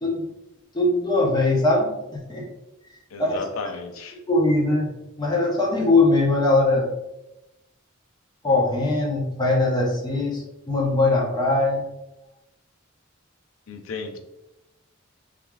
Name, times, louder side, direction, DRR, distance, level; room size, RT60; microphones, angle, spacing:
voice 1, 0.7-2.5 3.2-3.4 4.3-4.9 5.2-6.9 8.4-11.8, left 2 dB, 20° left, -2 dB, 0.6 m, -21 dB
voice 2, 3.1-4.2 13.7-14.2, left 4 dB, 85° left, 5 dB, 0.4 m, -33 dB
3.1 x 2.4 x 2.3 m, 0.93 s
head